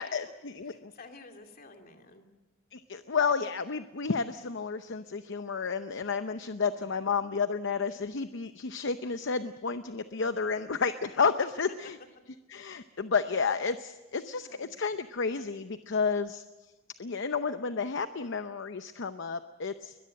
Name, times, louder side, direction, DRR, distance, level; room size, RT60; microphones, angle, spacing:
voice 1, 0.0-0.9 2.7-12.0 12.5-16.4 17.0-20.0, left 5 dB, 65° left, 10 dB, 0.7 m, -31 dB
voice 2, 0.7-2.3 6.6-7.1 11.7-11.8 14.2-14.8, left 3 dB, 50° left, 4 dB, 2.7 m, -52 dB
22.5 x 21.0 x 7.6 m, 1.1 s
head